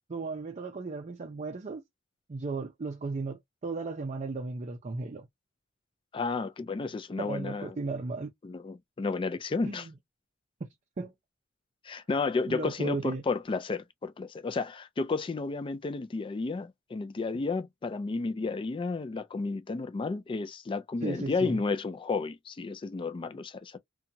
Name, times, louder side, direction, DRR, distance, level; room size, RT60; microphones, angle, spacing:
voice 1, 0.1-1.8 2.3-5.3 7.2-8.3 9.6-9.9 11.0-11.1 12.5-13.2 21.0-21.6, right 3 dB, 35° right, 0.4 m, -35 dB
voice 2, 6.1-7.8 8.4-9.9 11.8-23.8, left 4 dB, 25° left, 0.3 m, -32 dB
2.8 x 2.2 x 2.6 m
head